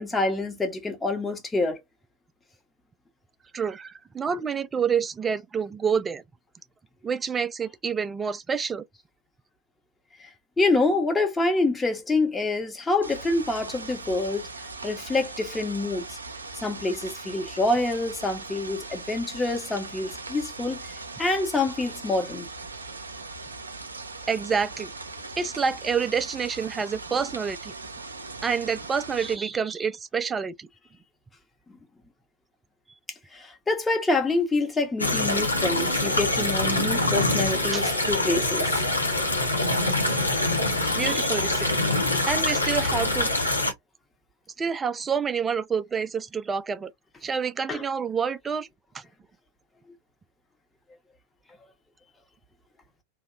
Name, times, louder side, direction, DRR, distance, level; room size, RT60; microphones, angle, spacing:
voice 1, 0.0-1.8 10.2-10.3 10.6-14.5 14.8-16.2 16.6-20.8 21.2-22.5 33.3-38.8 40.8-40.9 47.7-47.8, left 2 dB, 10° left, 0.8 m, -26 dB
voice 2, 3.5-6.2 7.0-8.8 24.3-24.9 25.4-27.7 28.4-30.7 37.7-38.0 40.9-41.8 42.2-43.3 44.6-46.9 47.2-48.7 48.9-49.0, right 6 dB, 15° right, 0.3 m, -28 dB
sound 1, 13.0-29.4, right 3 dB, 75° right, 0.5 m, -40 dB
sound 2, 35.0-43.7, left 2 dB, 85° left, 0.7 m, -24 dB
2.7 x 2.1 x 2.4 m
figure-of-eight pair, 90°, 0 cm